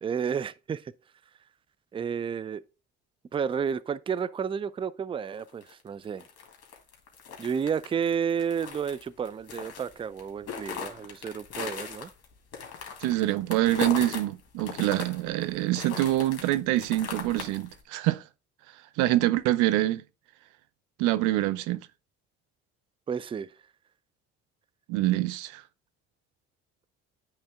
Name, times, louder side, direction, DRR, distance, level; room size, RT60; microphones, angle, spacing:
voice 1, 0.0-0.8 1.9-2.6 3.3-6.2 7.4-12.1 23.1-23.5, right 7 dB, 20° right, 0.3 m, -31 dB
sound 1, 5.4-14.2 14.6-17.8, left 6 dB, 55° left, 1.7 m, -39 dB
voice 2, 13.0-18.2 19.0-20.0 21.0-21.8 24.9-25.6, right 16 dB, 80° right, 0.5 m, -25 dB
8.8 x 3.2 x 3.5 m
supercardioid pair, 70°, 30 cm